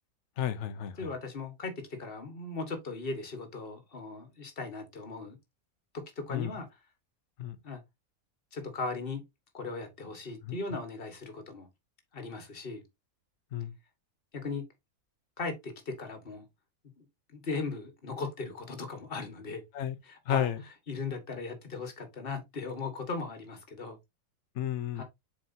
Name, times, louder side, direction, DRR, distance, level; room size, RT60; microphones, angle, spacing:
voice 1, 0.4-1.0 6.3-6.5 7.4-7.6 10.5-10.6 13.5-13.7 19.7-20.0 20.3-20.6 24.6-25.0, left 9 dB, 55° left, 1.0 m, -32 dB
voice 2, 1.0-5.4 5.9-6.7 7.6-7.8 8.5-9.2 9.5-11.7 12.1-12.8 14.3-14.6 15.4-16.4 17.0-17.1 17.3-19.6 20.0-20.5 20.9-24.0 25.0-25.1, left 3 dB, 40° left, 1.7 m, -38 dB
7.4 x 4.8 x 2.6 m
omnidirectional pair, 1.6 m